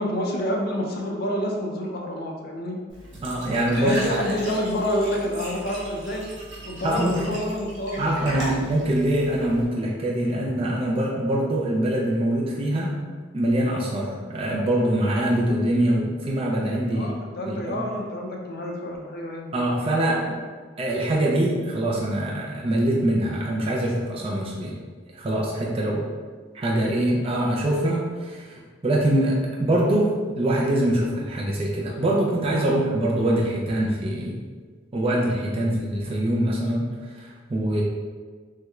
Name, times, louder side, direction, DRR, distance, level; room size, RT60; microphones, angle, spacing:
voice 1, 0.0-2.8 3.7-6.2 6.6-8.1 8.5-8.6 16.9-19.6, equal, 55° left, 0 dB, 0.5 m, -28 dB
Glass / Trickle dribble / Fill (with liquid), 2.9-9.6, right 1 dB, 70° right, 0.8 m, -37 dB
voice 2, 3.2-4.0 6.8-7.2 8.0-13.0 13.3-17.1 17.5-17.8 19.5-20.4 20.8-24.7 25.1-26.0 26.5-34.4 34.9-36.9 37.2-37.8, right 1 dB, 30° right, -3 dB, 0.4 m, -24 dB
3.2 x 3.0 x 2.3 m, 1.5 s
head